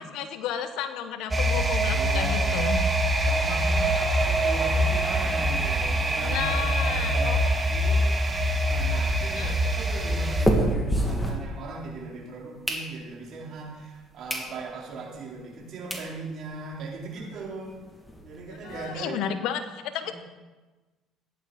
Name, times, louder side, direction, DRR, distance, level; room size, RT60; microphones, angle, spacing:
voice 1, 0.0-2.8 3.5-3.9 6.2-7.5 9.3-9.6 18.5-20.1, left 9 dB, 75° left, 9 dB, 1.1 m, -33 dB
sound 1, 1.3-10.5, right 1 dB, 20° right, 1.8 m, -24 dB
voice 2, 1.9-2.9 3.2-8.4 8.6-17.8 18.2-19.2 20.0-20.1, right 3 dB, 60° right, -3 dB, 4.3 m, -38 dB
sound 2, 8.1-12.0 12.4-13.4 13.9-14.0 14.3-14.5 14.9-15.0 15.6-15.7 15.9-16.1 16.5-16.6 16.8-16.9 17.2-17.3 17.6-18.8, right 1 dB, 10° left, 2.6 m, -29 dB
14.5 x 10.5 x 4.3 m, 1.2 s
supercardioid pair, 80°, 0 cm